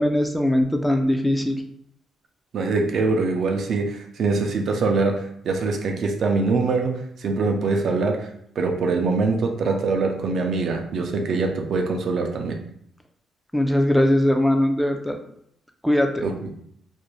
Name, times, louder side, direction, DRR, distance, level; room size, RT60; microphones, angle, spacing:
voice 1, 0.0-1.6 13.5-15.2 15.8-16.3, left 1 dB, 5° left, 4 dB, 0.4 m, -20 dB
voice 2, 2.5-8.3 8.6-12.6 16.2-16.5, right 3 dB, 60° right, 3 dB, 0.5 m, -23 dB
2.5 x 2.2 x 3.1 m, 0.70 s
cardioid pair, 90°, 0 cm